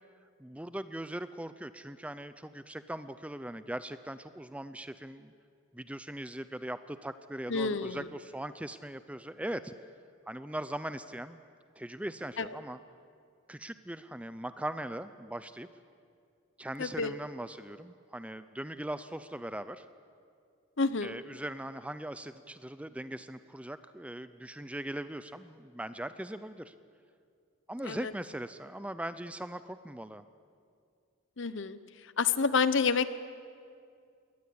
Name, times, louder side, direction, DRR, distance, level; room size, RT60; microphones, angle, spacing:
voice 1, 0.4-5.3 5.7-9.7 10.3-11.4 11.8-12.8 13.5-15.7 16.6-19.9 21.0-26.7 27.7-30.3, right 1 dB, 5° right, 12 dB, 0.5 m, -40 dB
voice 2, 7.5-8.0 12.4-12.5 16.8-17.1 20.8-21.2 27.8-28.1 31.4-31.8 32.2-33.1, left 5 dB, 60° left, 13 dB, 0.9 m, -28 dB
22.0 x 19.0 x 8.7 m, 2.3 s
head